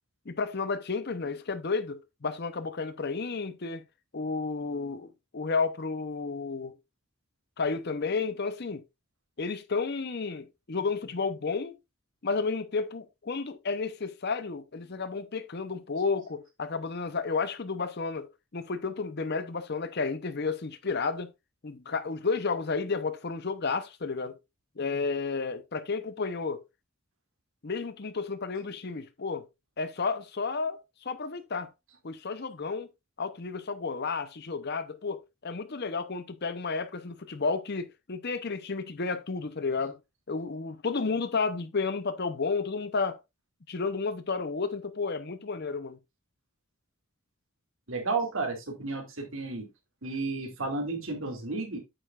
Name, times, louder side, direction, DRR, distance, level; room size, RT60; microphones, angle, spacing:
voice 1, 0.3-3.8 4.1-6.7 7.6-8.8 9.4-11.7 12.2-18.3 18.5-21.3 21.6-24.3 24.8-26.6 27.6-29.4 29.8-31.7 32.0-32.9 33.2-40.0 40.3-43.2 43.7-46.0, left 4 dB, 50° left, 0.8 m, -32 dB
voice 2, 47.9-49.7 50.0-51.8, right 3 dB, 65° right, 2.4 m, -32 dB
8.8 x 7.0 x 2.4 m
head